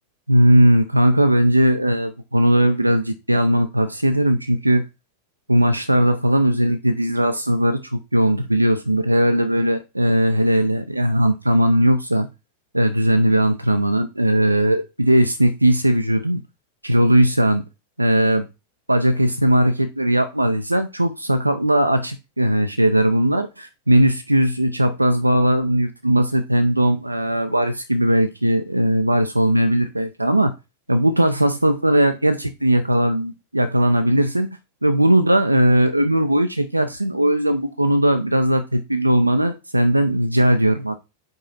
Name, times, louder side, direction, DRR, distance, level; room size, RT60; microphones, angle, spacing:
voice 1, 0.3-4.8 5.5-12.3 12.7-16.4 16.8-17.6 18.0-18.5 18.9-30.5 30.9-34.5 34.8-41.0, right 1 dB, 85° right, 0.5 m, -18 dB
5.3 x 4.8 x 4.1 m
figure-of-eight pair, 90°, 0 cm